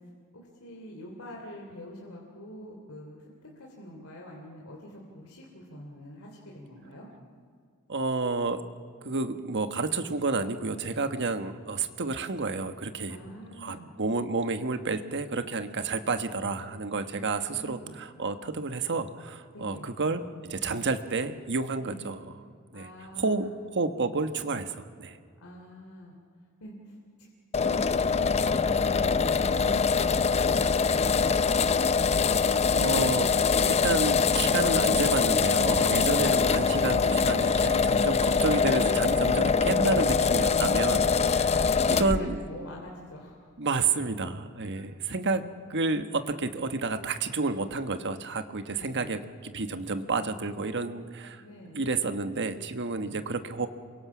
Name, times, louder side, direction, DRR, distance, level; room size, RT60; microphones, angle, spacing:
voice 1, 0.3-7.1 13.1-13.9 17.1-17.2 17.5-18.0 19.5-19.9 21.8-22.1 22.7-23.5 25.4-26.1 26.6-27.3 27.6-28.6 28.9-32.0 41.0-41.2 41.5-43.5 44.7-44.8 48.7-49.2 51.4-51.8 52.9-53.2, left 1 dB, 75° left, -1 dB, 3.1 m, -45 dB
voice 2, 7.9-8.6 9.0-13.2 13.6-22.2 22.7-22.9 23.2-25.2 32.7-33.3 33.7-42.3 43.6-45.4 45.7-51.4 51.7-53.7, right 3 dB, 55° right, 9 dB, 1.2 m, -30 dB
sound 1, 27.5-42.2, left 5 dB, 30° left, 0.5 m, -24 dB
27.5 x 23.0 x 6.1 m, 2.2 s
head